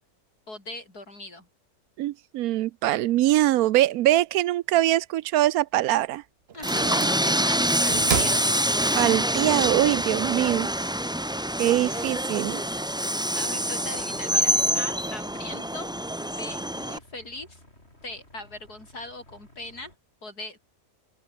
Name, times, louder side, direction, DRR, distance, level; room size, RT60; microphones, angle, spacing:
voice 1, 0.5-1.5 6.5-8.6 11.6-12.0 13.3-15.9 16.2-17.6 18.0-19.9 20.2-20.6, left 2 dB, 80° left, 8.1 m, -40 dB
voice 2, 2.0-6.2 9.0-10.7 11.6-12.6, right 14 dB, 75° right, 1.0 m, -23 dB
sound 1, 5.7-5.8 6.5-7.5 7.9-9.2, right 9 dB, 50° right, 0.9 m, -32 dB
Train, 6.6-17.0, equal, 5° right, 1.0 m, -26 dB
sound 2, 13.5-20.0, left 1 dB, 40° left, 7.7 m, -55 dB
open air
omnidirectional pair, 1.6 m